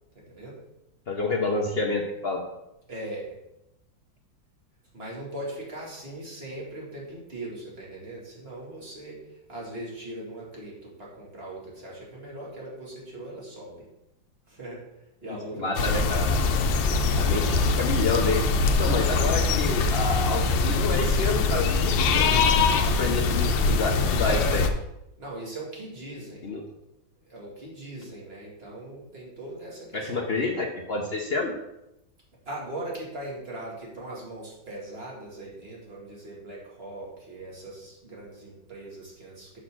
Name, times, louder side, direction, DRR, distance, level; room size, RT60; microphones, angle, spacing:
voice 1, 0.1-0.6 2.9-3.3 4.9-13.8 14.5-14.8 15.2-16.0 25.2-26.4 27.2-30.4 32.5-39.6, right 1 dB, 30° right, -5 dB, 2.4 m, -40 dB
voice 2, 1.1-2.4 15.5-16.4 17.2-18.4 18.8-24.7 26.4-26.6 29.9-31.5, left 3 dB, 60° left, 1 dB, 0.6 m, -29 dB
sound 1, 15.7-24.7, left 4 dB, 85° left, 1.4 m, -23 dB
6.7 x 4.3 x 6.0 m, 0.89 s
omnidirectional pair, 2.0 m